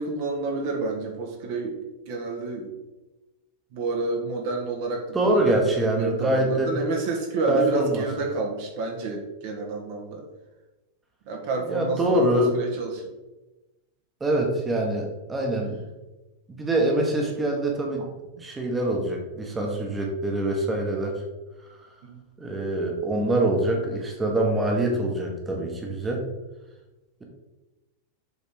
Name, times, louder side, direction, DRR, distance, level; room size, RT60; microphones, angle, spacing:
voice 1, 0.0-2.7 3.7-10.3 11.3-13.0 22.0-22.2, right 3 dB, 50° right, 1 dB, 1.2 m, -29 dB
voice 2, 5.1-6.7 7.5-8.0 11.6-12.5 14.2-15.8 16.5-18.0 18.4-21.1 22.4-26.2, right 1 dB, 15° right, 0 dB, 1.3 m, -24 dB
7.3 x 3.9 x 3.7 m, 1.1 s
figure-of-eight pair, 90°, 0 cm